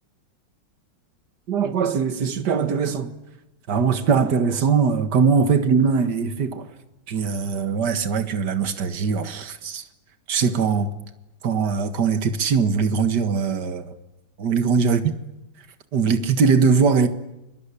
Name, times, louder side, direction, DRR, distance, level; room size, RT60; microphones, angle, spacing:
voice 1, 1.5-3.1 3.7-6.7 7.1-9.9 10.3-10.9 11.4-13.9 14.4-15.0 15.9-17.1, right 5 dB, 55° right, 2.2 m, -21 dB
29.0 x 23.5 x 8.5 m
omnidirectional pair, 2.3 m